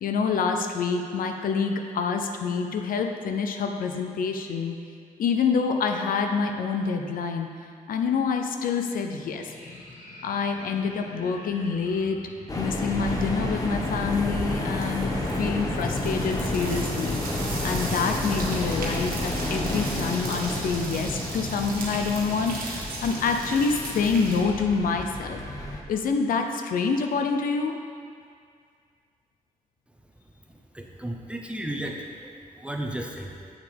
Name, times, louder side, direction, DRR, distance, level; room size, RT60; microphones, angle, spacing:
voice 1, 0.0-4.8 5.2-7.5 7.9-9.5 10.2-12.2 12.6-25.4 25.9-27.8, left 5 dB, 80° left, 4 dB, 0.5 m, -27 dB
sound 1, 9.2-22.7, left 3 dB, 60° left, 1.3 m, -43 dB
sound 2, 12.5-25.8, left 1 dB, 25° left, 1.0 m, -31 dB
sound 3, 12.8-13.2 13.5-24.4, right 2 dB, 80° right, 1.4 m, -37 dB
voice 2, 30.7-32.3 32.5-33.3, right 1 dB, 10° right, 1 dB, 0.8 m, -34 dB
7.4 x 6.4 x 3.4 m, 2.2 s
cardioid pair, 75°, 15 cm